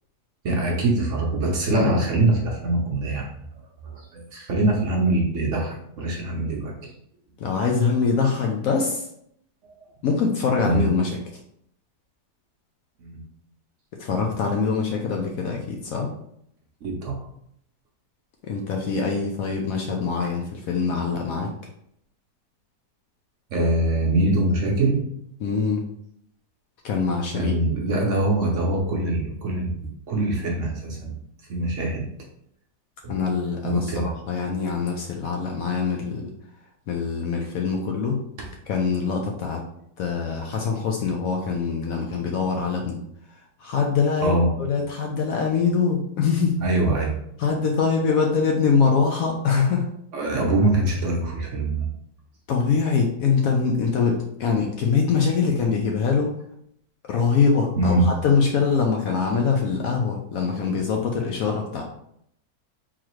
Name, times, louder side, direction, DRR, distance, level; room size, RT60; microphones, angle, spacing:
voice 1, 0.4-3.3 3.8-6.9 9.6-9.7 10.6-10.9 13.0-13.2 16.8-17.1 23.5-25.0 27.3-31.2 31.5-32.1 33.0-33.1 33.6-34.1 44.2-44.5 46.6-47.2 50.1-51.9 57.8-58.1, right 2 dB, 60° right, -1 dB, 0.8 m, -23 dB
voice 2, 7.4-9.1 10.0-11.2 14.0-16.1 18.4-21.5 25.4-25.8 26.8-27.6 33.1-36.3 36.9-38.2 38.7-39.6 40.0-43.0 43.3-46.6 47.4-49.9 52.5-56.4 57.1-61.8, left 5 dB, 70° left, 1 dB, 0.8 m, -23 dB
3.8 x 3.0 x 3.0 m, 0.72 s
omnidirectional pair, 1.9 m